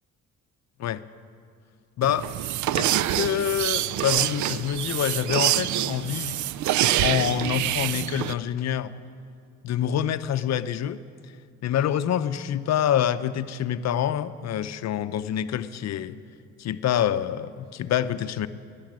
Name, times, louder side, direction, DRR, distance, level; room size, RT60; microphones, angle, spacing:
voice 1, 2.0-2.3 2.7-6.4 7.0-8.9 9.6-11.0 11.6-16.2 16.6-18.5, left 10 dB, 60° left, 12 dB, 0.6 m, -26 dB
sound 1, 2.0-8.3, right 13 dB, 70° right, 0.5 m, -26 dB
15.5 x 10.5 x 7.6 m, 2.3 s
cardioid pair, 90°, 30 cm